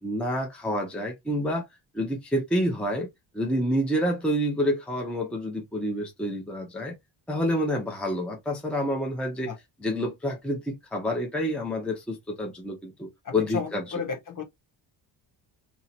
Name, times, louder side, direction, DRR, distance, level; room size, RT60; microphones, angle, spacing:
voice 1, 0.0-1.6 1.9-3.1 3.3-6.9 7.3-9.5 9.8-13.8, equal, ahead, 0.7 m, -28 dB
voice 2, 13.2-14.4, left 5 dB, 45° left, 1.3 m, -33 dB
2.9 x 2.7 x 4.3 m
wide cardioid pair, 155°, 44 cm